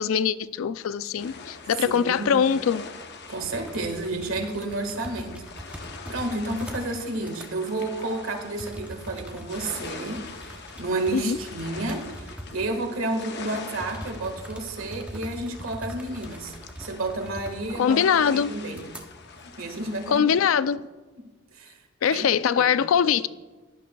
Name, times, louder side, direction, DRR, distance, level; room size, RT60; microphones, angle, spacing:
voice 1, 0.0-2.9 11.1-11.4 17.8-18.5 20.1-20.8 22.0-23.3, left 7 dB, 80° left, 0.4 m, -22 dB
sound 1, 1.2-20.2, left 4 dB, 55° left, 0.7 m, -43 dB
voice 2, 1.8-2.4 3.3-5.8 6.1-18.9 19.6-20.4 21.5-21.8 22.1-22.3 22.6-22.8, right 2 dB, 85° right, 1.7 m, -31 dB
sound 2, 3.4-7.0 7.2-7.5 8.6-12.8 13.1-13.2 13.8-17.8 18.2-18.3 18.7-19.0, right 1 dB, 5° right, 0.7 m, -42 dB
16.0 x 11.0 x 2.3 m
head